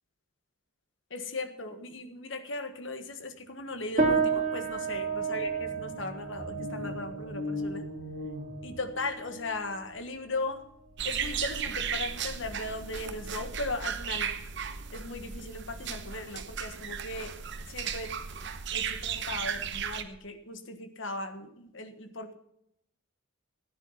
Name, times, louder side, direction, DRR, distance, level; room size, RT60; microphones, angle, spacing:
voice 1, 1.1-7.8 8.6-10.7 11.0-14.3 14.9-17.3 17.7-18.1 18.7-22.3, left 2 dB, 60° left, 8 dB, 1.4 m, -37 dB
sound 1, 3.8-3.9 4.2-9.3, left 2 dB, 85° left, 3.7 m, -40 dB
sound 2, 4.0-13.6, right 4 dB, 35° right, 2.3 m, -33 dB
sound 3, 11.0-20.0, right 7 dB, 55° right, 0.9 m, -35 dB
14.5 x 9.6 x 5.6 m, 0.78 s
head